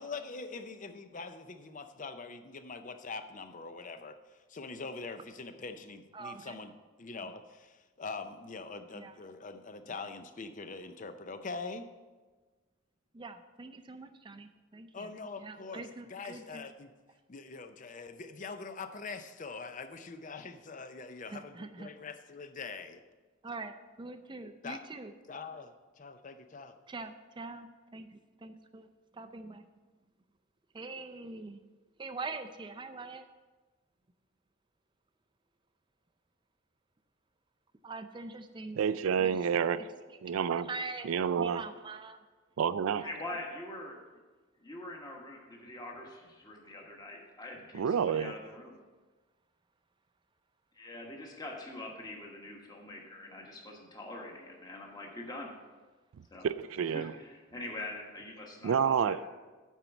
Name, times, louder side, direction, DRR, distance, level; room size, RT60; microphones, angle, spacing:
voice 1, 0.0-4.2 4.5-6.7 7.0-11.8 14.9-15.8 16.1-16.9 17.3-23.0 24.6-24.8 25.3-26.8, left 4 dB, 40° left, 9 dB, 0.5 m, -43 dB
voice 2, 6.1-6.6 8.9-9.1 13.1-15.1 15.4-16.7 21.3-21.9 23.4-25.1 26.9-29.7 30.7-31.6 32.0-33.3 37.8-38.8 39.2-39.4 39.8-40.2 40.6-41.1 41.4-42.2 43.0-43.1, right 3 dB, 25° right, 8 dB, 0.4 m, -44 dB
voice 3, 38.8-39.9 40.2-40.7 41.0-41.6 42.6-43.1 47.7-48.3 56.4-57.1 58.6-59.2, right 7 dB, 80° right, 16 dB, 0.4 m, -29 dB
voice 4, 43.0-43.9 44.6-48.7 50.7-55.5 56.3-56.5 56.9-59.2, left 1 dB, 20° left, -1 dB, 1.3 m, -44 dB
9.1 x 4.5 x 7.0 m, 1.3 s
head